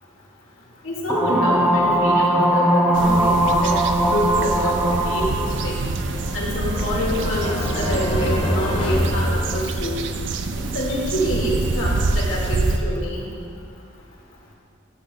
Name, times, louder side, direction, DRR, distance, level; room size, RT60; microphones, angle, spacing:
voice 1, 0.8-3.7 4.0-4.7 5.1-5.9 6.3-10.0 10.6-13.3, equal, 85° left, -4 dB, 2.0 m, -26 dB
sound 1, 1.1-5.6, right 1 dB, 10° right, 0.4 m, -19 dB
sound 2, 2.9-12.8, right 2 dB, 60° right, 0.5 m, -26 dB
sound 3, 5.7-10.1, left 1 dB, 25° left, 0.9 m, -27 dB
13.5 x 9.7 x 2.3 m, 2.2 s
head